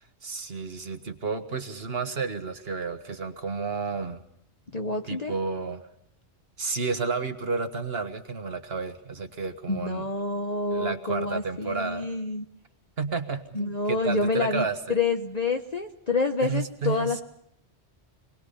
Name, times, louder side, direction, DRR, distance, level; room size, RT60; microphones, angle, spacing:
voice 1, 0.2-4.2 5.1-5.9 6.6-10.1 10.7-12.1 13.0-15.0 16.4-17.2, right 4 dB, 60° right, 7 dB, 1.8 m, -31 dB
voice 2, 4.7-5.3 9.7-12.4 13.5-17.2, left 3 dB, 40° left, 4 dB, 1.0 m, -28 dB
27.0 x 20.0 x 5.7 m, 0.72 s
omnidirectional pair, 1.1 m